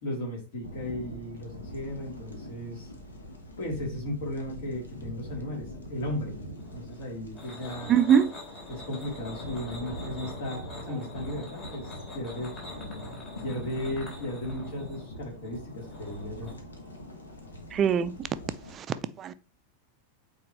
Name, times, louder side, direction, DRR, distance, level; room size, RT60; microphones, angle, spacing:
voice 1, 0.0-2.9 3.6-6.3 6.7-8.0 8.7-12.5 13.4-16.5, left 1 dB, 55° left, 3.1 m, -36 dB
sound 1, 0.6-18.8, left 1 dB, 75° left, 1.3 m, -43 dB
sound 2, 6.5-16.5, left 2 dB, 30° left, 3.7 m, -45 dB
voice 2, 7.9-8.3 17.7-18.1 18.7-18.9 19.2-19.3, right 8 dB, 30° right, 0.5 m, -22 dB
8.6 x 4.3 x 3.1 m
figure-of-eight pair, 90°, 0 cm